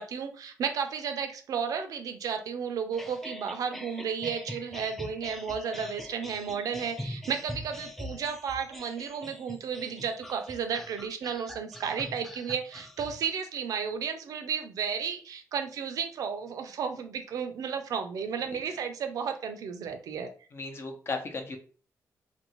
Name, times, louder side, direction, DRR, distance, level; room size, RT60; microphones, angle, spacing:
voice 1, 0.0-20.3, right 6 dB, 80° right, 6 dB, 0.5 m, -33 dB
sound 1, 2.9-13.3, left 1 dB, 5° left, 0.4 m, -43 dB
voice 2, 20.5-21.6, left 3 dB, 45° left, 4 dB, 0.7 m, -35 dB
2.8 x 2.6 x 3.0 m, 0.40 s
cardioid pair, 100°, 6 cm